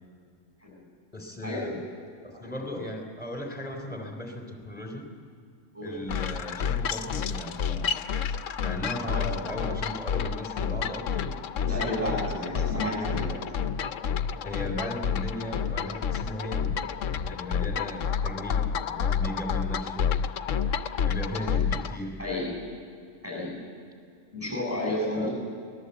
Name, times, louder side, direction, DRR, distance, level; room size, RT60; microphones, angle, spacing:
voice 1, 1.1-1.8 2.2-5.1 5.8-7.9 8.6-11.3 11.6-12.2 12.5-13.5 14.4-16.8 17.2-20.1 21.0-22.2 25.1-25.3, left 1 dB, 5° left, 3 dB, 3.6 m, -37 dB
sound 1, 6.1-22.0, left 7 dB, 80° left, 1.1 m, -29 dB
voice 2, 11.7-13.4 22.2-22.6 23.2-23.6 24.3-25.3, left 1 dB, 10° right, -2 dB, 8.1 m, -31 dB
23.0 x 19.5 x 8.1 m, 2.2 s
omnidirectional pair, 1.3 m